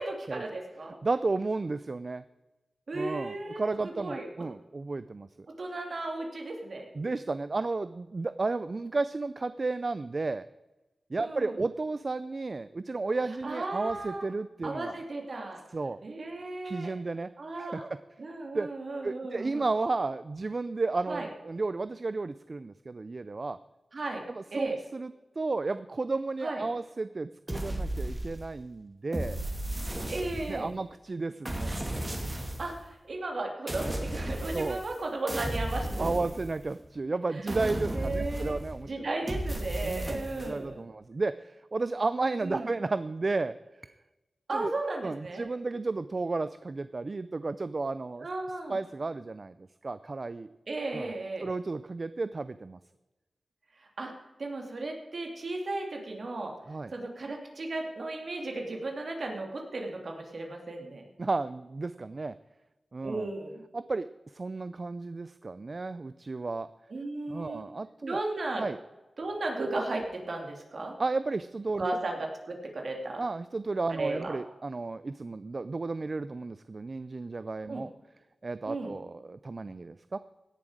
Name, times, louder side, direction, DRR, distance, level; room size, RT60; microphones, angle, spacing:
voice 1, 0.0-1.0 2.9-4.3 5.6-6.9 11.2-11.5 13.4-14.2 14.6-15.6 16.0-16.9 17.4-17.8 18.2-19.6 21.1-21.3 23.9-24.2 24.5-24.7 26.4-26.6 30.1-30.7 32.6-36.1 37.3-37.4 37.9-38.6 38.9-40.8 42.4-42.7 44.5-45.4 48.2-48.8 50.7-51.5 54.0-54.1 54.4-56.5 56.9-61.0 63.0-63.6 66.9-67.6 68.1-68.6 69.2-70.9 71.8-72.2 72.5-73.2 73.9-74.4 77.7-77.8 78.7-78.9, right 2 dB, 65° right, 1 dB, 2.7 m, -35 dB
voice 2, 1.0-2.2 2.9-5.5 6.9-10.5 11.1-14.9 15.7-16.0 16.6-17.3 17.6-18.0 18.5-18.7 19.0-23.6 24.3-29.4 30.5-31.8 34.5-34.8 36.0-39.1 39.8-43.6 44.5-44.7 45.0-48.3 48.7-50.5 50.9-51.1 51.4-52.8 56.7-56.9 61.2-62.3 62.9-63.3 63.7-64.1 64.3-66.7 67.3-68.2 68.6-68.8 71.0-72.0 73.2-77.9 78.4-80.2, right 3 dB, 45° right, 14 dB, 0.4 m, -33 dB
sound 1, 27.5-28.6 29.1-30.7 31.4-32.8 33.7-35.0 35.3-36.9 37.5-38.8 39.3-40.5, right 1 dB, 20° right, 2.3 m, -34 dB
17.0 x 7.2 x 5.0 m, 1.1 s
wide cardioid pair, 70°, 0 cm